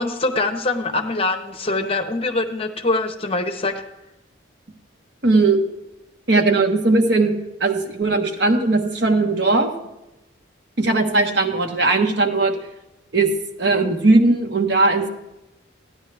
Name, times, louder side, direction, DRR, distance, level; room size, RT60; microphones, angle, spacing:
voice 1, 0.0-3.8, left 2 dB, 30° left, 7 dB, 0.7 m, -23 dB
voice 2, 5.2-5.6 6.3-7.3 7.6-9.7 10.8-12.5 13.1-13.3 13.6-15.1, right 3 dB, 60° right, 4 dB, 1.2 m, -18 dB
14.5 x 10.0 x 3.4 m, 0.97 s
head